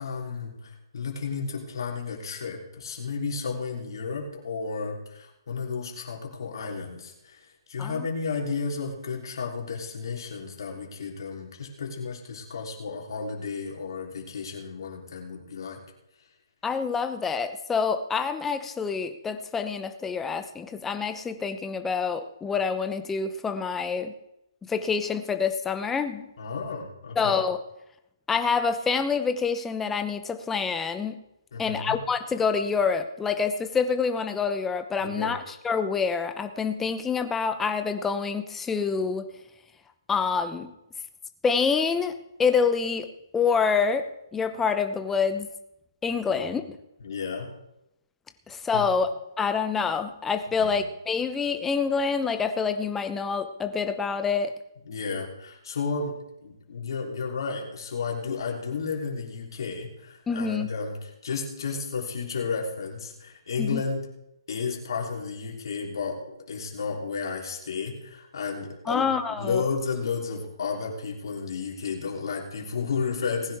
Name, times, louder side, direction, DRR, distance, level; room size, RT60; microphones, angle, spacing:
voice 1, 0.0-15.8 26.4-27.3 31.5-32.0 35.0-35.4 46.3-46.6 47.0-47.5 48.7-48.9 50.6-50.8 54.9-56.2 56.4-64.0 64.5-73.6, left 5 dB, 60° left, -1 dB, 3.4 m, -32 dB
voice 2, 16.6-24.1 24.7-26.3 27.2-27.6 28.3-31.2 31.6-39.3 40.1-40.7 41.4-42.1 42.4-43.1 43.3-44.1 44.3-45.5 46.0-46.7 48.5-49.1 49.4-54.5 60.3-60.7 63.6-63.8 68.9-69.7, left 5 dB, 10° left, 9 dB, 0.8 m, -27 dB
19.0 x 10.5 x 3.5 m, 0.86 s
hypercardioid pair, 145°, 3 cm